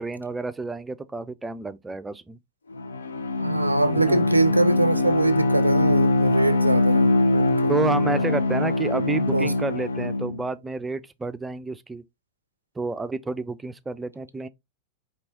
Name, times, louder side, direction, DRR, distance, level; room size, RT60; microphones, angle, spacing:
voice 1, 0.0-2.4 3.9-4.2 7.7-12.0 12.8-14.5, right 3 dB, 10° right, 0.3 m, -30 dB
Bowed string instrument, 2.7-10.4, left 2 dB, 75° left, 0.4 m, -22 dB
voice 2, 3.4-7.7 9.3-9.5, right 2 dB, 85° right, 0.4 m, -23 dB
4.5 x 3.0 x 2.9 m
figure-of-eight pair, 90°, 0 cm